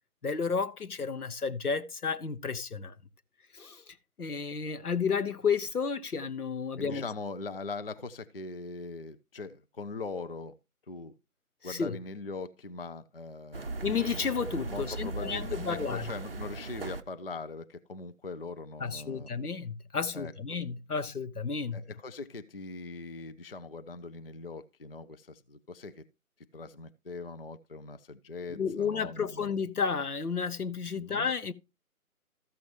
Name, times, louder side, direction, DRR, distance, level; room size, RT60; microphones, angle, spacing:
voice 1, 0.2-3.0 3.5-7.0 11.6-12.0 13.8-16.1 18.8-21.8 28.5-31.5, left 5 dB, 85° left, 1.1 m, -32 dB
voice 2, 6.8-10.6 10.9-11.1 11.6-13.8 14.7-19.3 20.1-20.3 21.7-26.0 26.5-29.5 30.9-31.3, left 3 dB, 40° left, 0.5 m, -41 dB
sound 1, 13.5-17.0, right 3 dB, 40° right, 0.6 m, -38 dB
14.0 x 6.9 x 3.1 m
figure-of-eight pair, 155°, 44 cm